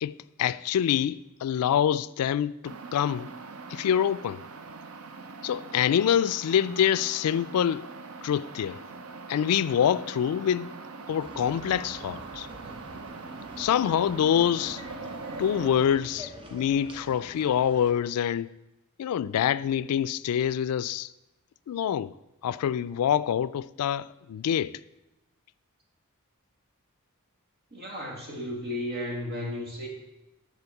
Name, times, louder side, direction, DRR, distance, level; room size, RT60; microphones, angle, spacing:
voice 1, 0.0-3.3 3.7-4.4 5.4-7.9 8.2-8.8 9.3-10.7 11.1-12.5 13.6-14.8 15.4-18.5 19.0-21.1 21.7-22.1 22.4-24.8, left 9 dB, 90° left, 0.3 m, -26 dB
sound 1, 2.6-15.9, right 3 dB, 75° right, 0.7 m, -42 dB
sound 2, 11.2-17.9, right 1 dB, 25° right, 0.9 m, -45 dB
voice 2, 27.7-29.9, left 1 dB, 45° right, 2.0 m, -34 dB
9.8 x 4.2 x 7.1 m
head